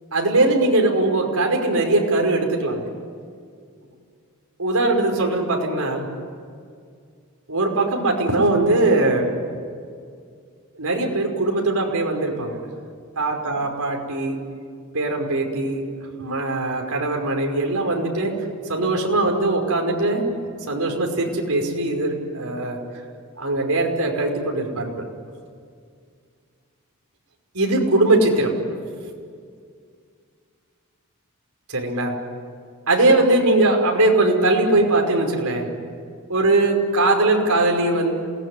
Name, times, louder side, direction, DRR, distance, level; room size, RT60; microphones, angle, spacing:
voice 1, 0.1-2.9 4.6-6.1 7.5-9.3 10.8-12.6 13.2-14.4 14.9-15.8 16.2-18.3 18.7-20.3 20.7-22.8 23.4-25.0 27.5-28.5 31.7-32.2 32.9-35.7 36.3-38.1, right 2 dB, 90° right, 2 dB, 5.5 m, -20 dB
28.0 x 20.0 x 9.9 m, 2.2 s
head